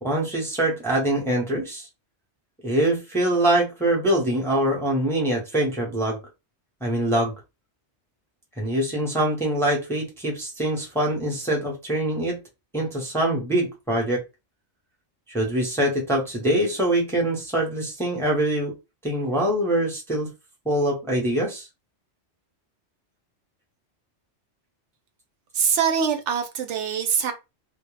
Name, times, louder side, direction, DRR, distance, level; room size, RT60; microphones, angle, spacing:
voice 1, 0.0-1.9 2.6-6.2 6.8-7.3 8.6-12.4 12.7-14.2 15.3-18.7 19.0-20.3 20.7-21.6, right 1 dB, 5° left, 0.6 m, -24 dB
voice 2, 25.5-27.3, right 7 dB, 80° right, 0.9 m, -23 dB
2.3 x 2.1 x 3.1 m
omnidirectional pair, 1.2 m